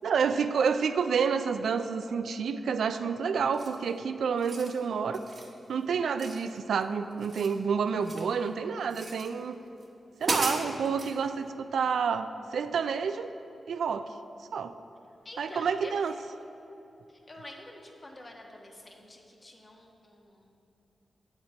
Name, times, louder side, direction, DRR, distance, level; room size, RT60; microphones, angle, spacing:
voice 1, 0.0-5.2 5.7-9.6 10.2-13.3 13.7-14.1 14.5-14.7 15.4-16.1, right 6 dB, 85° right, 10 dB, 0.3 m, -29 dB
sound 1, 3.5-3.9 4.3-4.8 5.1-5.5 6.2-6.8 7.1-8.3 8.9-9.3 9.8-9.9 10.2-11.1, right 2 dB, 55° right, 1.1 m, -35 dB
voice 2, 15.2-15.9 17.1-20.6, left 1 dB, 35° left, 0 dB, 1.3 m, -48 dB
8.6 x 4.4 x 7.0 m, 3.0 s
cardioid pair, 50°, 0 cm